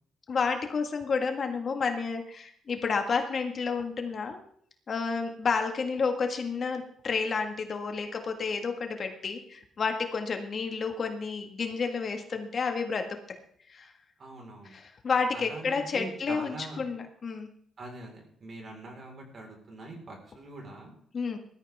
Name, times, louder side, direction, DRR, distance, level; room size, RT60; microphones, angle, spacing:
voice 1, 0.3-4.4 4.9-13.1 13.7-13.9 14.7-17.5 21.1-21.4, left 5 dB, 40° left, 5 dB, 1.7 m, -30 dB
voice 2, 14.2-14.8 15.3-16.8 17.8-20.9, right 2 dB, 40° right, 1 dB, 4.5 m, -43 dB
20.0 x 13.5 x 3.6 m, 0.63 s
cardioid pair, 130°, 0 cm